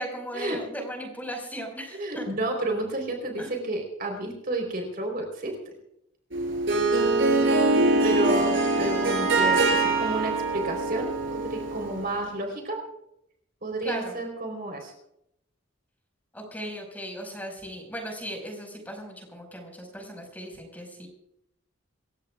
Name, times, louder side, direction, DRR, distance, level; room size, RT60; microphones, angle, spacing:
voice 1, 0.0-2.3 3.4-3.5 7.5-8.3 13.8-14.2 16.3-21.1, equal, 10° left, 2 dB, 5.3 m, -37 dB
voice 2, 1.9-5.6 8.0-12.8 13.6-14.9, right 2 dB, 45° right, 3 dB, 4.1 m, -31 dB
Harp, 6.3-12.1, right 2 dB, 65° right, 6.2 m, -23 dB
27.5 x 15.5 x 2.5 m, 0.78 s
head